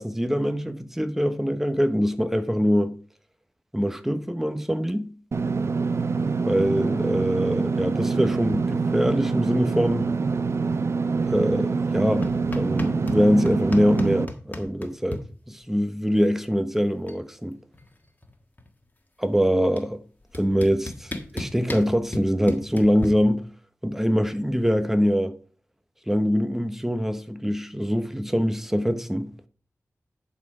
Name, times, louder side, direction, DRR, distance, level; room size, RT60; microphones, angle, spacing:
voice 1, 0.0-2.9 3.7-5.1 6.5-10.1 11.3-15.2 15.5-17.6 19.2-20.0 20.3-23.4 23.8-25.4 26.1-29.3, equal, 5° right, 0.9 m, -23 dB
Engine / Mechanisms, 5.3-14.2, right 4 dB, 55° right, 0.4 m, -25 dB
sound 1, 12.2-13.2 13.5-15.2 16.5-16.6 16.8-17.2 17.5-18.9 19.8-19.9 20.3-23.1, left 2 dB, 35° left, 1.5 m, -34 dB
10.5 x 4.3 x 4.9 m
wide cardioid pair, 60°, 5 cm